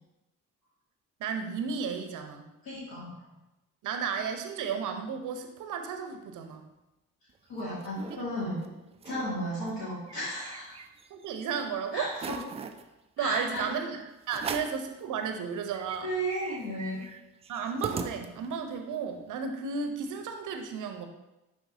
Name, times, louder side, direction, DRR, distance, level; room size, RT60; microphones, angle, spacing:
voice 1, 1.2-2.5 3.8-6.7 8.1-8.2 8.7-8.8 9.2-9.4 11.1-12.1 13.2-16.1 17.5-21.1, right 6 dB, 45° right, 6 dB, 0.8 m, -33 dB
voice 2, 2.6-3.1 7.5-8.6 9.0-10.8 11.9-12.4 13.2-13.6 14.4-14.5 16.0-17.0, equal, 55° left, -9 dB, 2.0 m, -34 dB
sound 1, 7.3-8.2 8.6-8.7 8.9-9.3 9.7-11.3 11.7-11.8 12.1-12.8 13.5-13.7 14.3-14.9 15.3-15.4 15.6-18.7, right 6 dB, 15° right, 0.3 m, -40 dB
10.5 x 3.6 x 2.7 m, 0.97 s
figure-of-eight pair, 45°, 42 cm